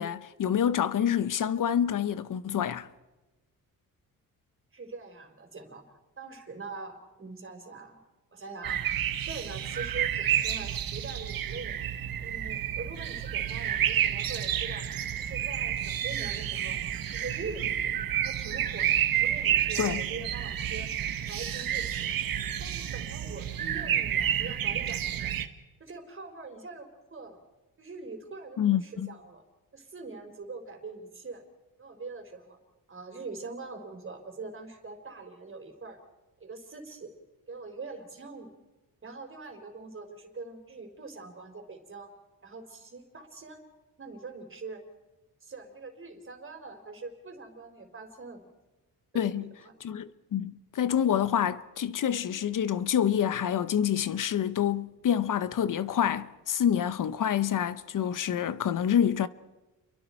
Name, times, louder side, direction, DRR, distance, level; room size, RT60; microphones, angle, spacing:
voice 1, 0.0-2.9 19.8-20.0 28.6-29.1 49.1-49.5 49.8-59.3, left 9 dB, 60° left, 0.9 m, -27 dB
voice 2, 4.7-5.8 6.2-8.0 8.3-8.9 9.2-11.8 12.2-14.9 15.2-16.8 17.1-17.9 18.2-20.9 21.3-22.1 22.6-25.3 25.8-27.4 27.8-29.4 29.7-31.4 31.8-32.6 32.9-36.0 36.4-37.1 37.5-38.5 39.0-42.1 42.4-43.6 44.0-44.8 45.4-48.4 49.1-49.7, right 3 dB, 35° right, 4.0 m, -43 dB
sound 1, 8.6-25.5, right 10 dB, 70° right, 1.4 m, -30 dB
29.5 x 23.0 x 4.5 m
cardioid pair, 90°, 36 cm